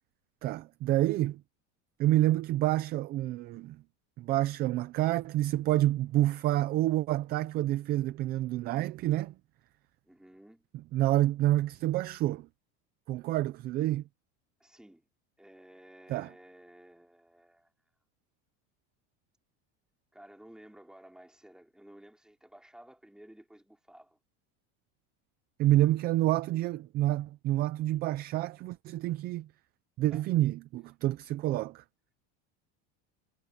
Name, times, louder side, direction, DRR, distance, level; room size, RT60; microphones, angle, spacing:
voice 1, 0.4-1.4 2.0-3.8 4.2-9.3 10.9-12.5 13.1-14.0 16.1-16.3 25.6-29.5 30.0-31.8, right 15 dB, 30° right, 0.4 m, -28 dB
voice 2, 10.0-10.7 14.6-15.1 15.4-17.7 20.1-24.2 30.1-30.3, right 1 dB, ahead, 4.0 m, -54 dB
cardioid pair, 170°, 36 cm